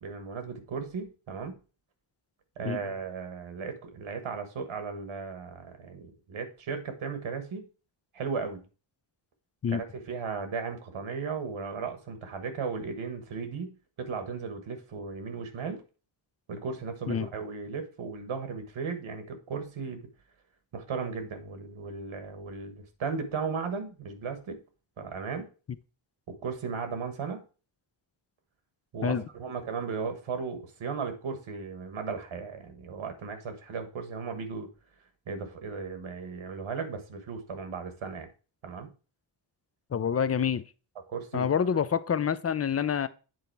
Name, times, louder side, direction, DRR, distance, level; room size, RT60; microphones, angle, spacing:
voice 1, 0.0-1.6 2.6-7.7 8.1-8.6 9.7-15.8 16.5-20.0 20.7-24.6 25.0-25.5 26.3-27.4 28.9-34.7 35.3-38.3 38.6-38.9 41.1-41.5, right 5 dB, 80° right, 1.4 m, -36 dB
voice 2, 39.9-40.6 41.3-43.1, left 7 dB, 30° left, 0.5 m, -27 dB
7.8 x 4.1 x 4.5 m
wide cardioid pair, 90°, 48 cm